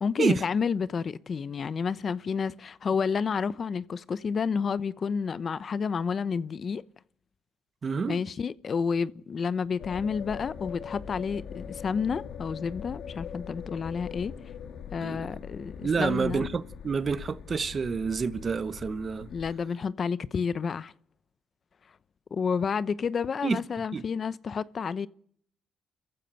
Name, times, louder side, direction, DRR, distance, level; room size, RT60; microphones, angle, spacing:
voice 1, 0.0-6.8 8.1-14.3 14.9-16.5 19.3-20.9 22.3-25.1, left 6 dB, 45° left, 0.8 m, -30 dB
voice 2, 7.8-8.2 15.0-15.3 15.8-19.3 23.4-23.6 23.9-24.0, right 5 dB, 40° right, 1.1 m, -28 dB
sound 1, 9.8-19.6, left 7 dB, 70° left, 2.8 m, -42 dB
29.0 x 15.0 x 7.7 m
cardioid pair, 90°, 0 cm